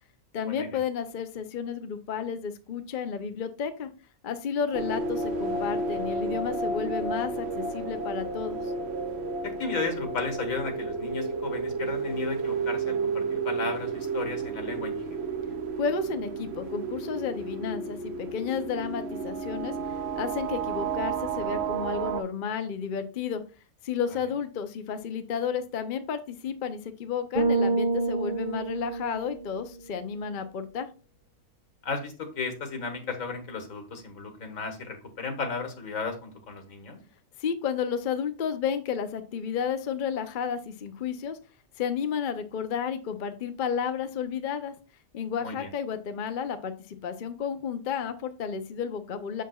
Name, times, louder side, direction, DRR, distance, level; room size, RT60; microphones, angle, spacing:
voice 1, 0.3-3.9 4.2-8.7 15.8-19.7 20.1-23.4 23.8-30.9 37.4-41.4 41.8-44.8 45.1-49.4, left 7 dB, 45° left, 8 dB, 0.7 m, -32 dB
sound 1, 4.7-22.2, right 4 dB, 55° right, 1.0 m, -31 dB
voice 2, 9.6-15.3 31.8-37.0 45.4-45.7, left 4 dB, 80° left, 5 dB, 1.9 m, -34 dB
Bass guitar, 27.3-29.7, right 3 dB, 35° right, 2.3 m, -27 dB
7.5 x 6.9 x 2.3 m, 0.33 s
omnidirectional pair, 1.4 m